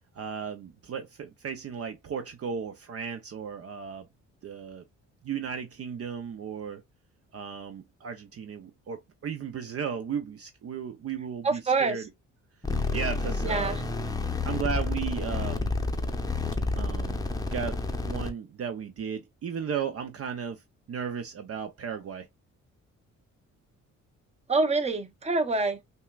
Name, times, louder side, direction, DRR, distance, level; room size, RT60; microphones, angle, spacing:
voice 1, 0.1-4.1 4.4-4.8 5.2-6.8 7.3-12.1 12.9-13.9 14.4-15.8 16.7-17.2 17.5-20.6 20.9-22.3, right 7 dB, 50° right, 0.7 m, -35 dB
voice 2, 11.4-12.0 13.4-13.8 24.5-25.8, right 3 dB, 20° right, 0.9 m, -26 dB
sound 1, 12.6-18.3, left 3 dB, 10° left, 0.7 m, -30 dB
5.5 x 2.3 x 2.3 m
cardioid pair, 90°, 30 cm